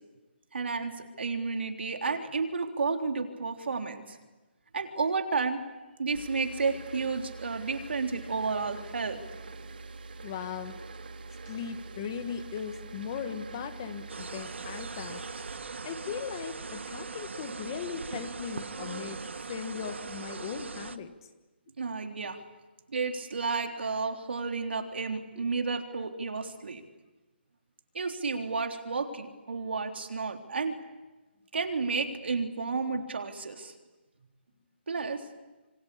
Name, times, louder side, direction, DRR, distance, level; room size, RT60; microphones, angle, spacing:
voice 1, 0.5-4.2 4.7-5.6 6.0-9.2 21.8-22.4 22.9-26.8 27.9-30.8 31.5-33.7 34.9-35.2, right 4 dB, 70° right, 4 dB, 3.7 m, -31 dB
sound 1, 6.1-15.6, right 3 dB, 55° right, 2.1 m, -45 dB
voice 2, 10.2-10.8 11.4-15.2 15.8-19.2 19.5-21.1, left 7 dB, 20° left, 10 dB, 1.3 m, -38 dB
sound 2, 14.1-21.0, right 4 dB, 85° right, 1.6 m, -40 dB
27.0 x 25.5 x 8.6 m, 1.1 s
hypercardioid pair, 180°, 6 cm